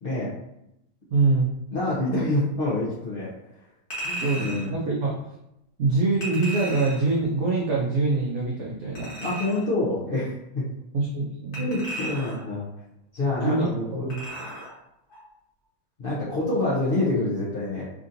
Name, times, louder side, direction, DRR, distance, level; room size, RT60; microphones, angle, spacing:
voice 1, 0.0-0.3 1.7-3.3 4.0-4.7 9.2-10.6 11.6-12.7 13.1-14.2 16.0-17.9, left 2 dB, 65° left, -8 dB, 0.5 m, -27 dB
voice 2, 1.1-1.5 4.2-5.1 5.8-9.3 10.9-11.7 13.4-14.5, right 3 dB, 80° right, -2 dB, 0.6 m, -25 dB
Chink clink, 3.9-4.7 6.2-7.1 9.0-9.7 11.5-12.5 14.1-14.7 15.1-15.2, right 1 dB, 35° left, 1.1 m, -35 dB
3.6 x 2.6 x 2.5 m, 0.85 s
omnidirectional pair, 1.8 m